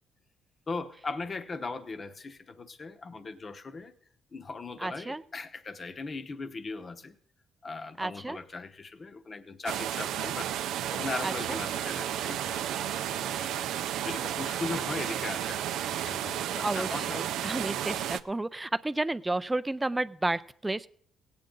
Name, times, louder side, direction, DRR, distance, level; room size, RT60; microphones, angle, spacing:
voice 1, 0.7-3.9 4.3-7.2 7.6-10.5 10.9-13.6 14.0-15.7 15.9-17.7, left 3 dB, 35° left, 9 dB, 0.9 m, -39 dB
voice 2, 4.8-5.2 8.0-8.4 11.2-11.6 16.6-20.9, right 2 dB, 15° right, 14 dB, 0.4 m, -32 dB
sound 1, 9.7-18.2, right 11 dB, 85° right, 0.4 m, -32 dB
17.5 x 8.7 x 3.8 m, 0.62 s
cardioid pair, 90°, 0 cm